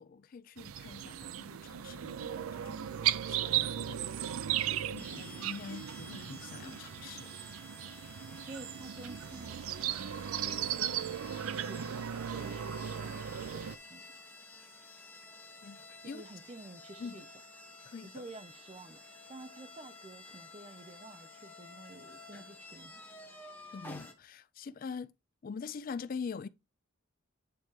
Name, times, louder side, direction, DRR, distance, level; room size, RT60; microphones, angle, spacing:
voice 1, 0.0-7.4 15.6-16.2 17.0-17.2 17.9-18.2 23.7-25.1 25.4-26.5, left 5 dB, 45° left, 0.3 m, -44 dB
sound 1, 0.6-13.8, right 10 dB, 90° right, 0.4 m, -36 dB
sound 2, 5.0-24.1, left 2 dB, 10° left, 1.1 m, -52 dB
voice 2, 8.5-11.2 11.6-12.1 12.4-14.1 16.0-17.3 18.0-19.0 19.3-23.0, right 2 dB, 30° right, 0.5 m, -50 dB
8.4 x 4.3 x 3.1 m
head